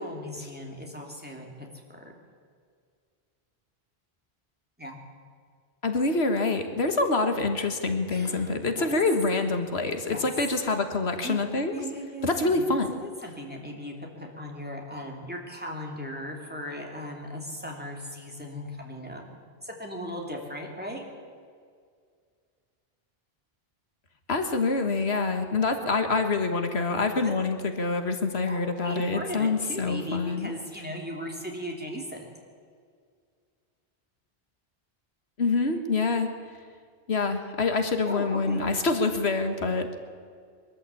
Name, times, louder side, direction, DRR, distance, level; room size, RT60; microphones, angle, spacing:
voice 1, 0.0-1.5 1.9-2.0 4.8-5.0 8.1-8.9 10.1-10.2 11.2-11.4 11.7-12.6 13.0-19.2 19.6-21.0 27.2-27.3 28.5-32.3 38.0-38.6, equal, 10° right, 0 dB, 3.1 m, -37 dB
voice 2, 5.8-11.8 12.2-12.9 24.3-30.5 35.4-36.3 37.1-40.0, left 3 dB, 85° left, 6 dB, 1.8 m, -26 dB
22.5 x 13.5 x 8.5 m, 2.1 s
omnidirectional pair, 1.1 m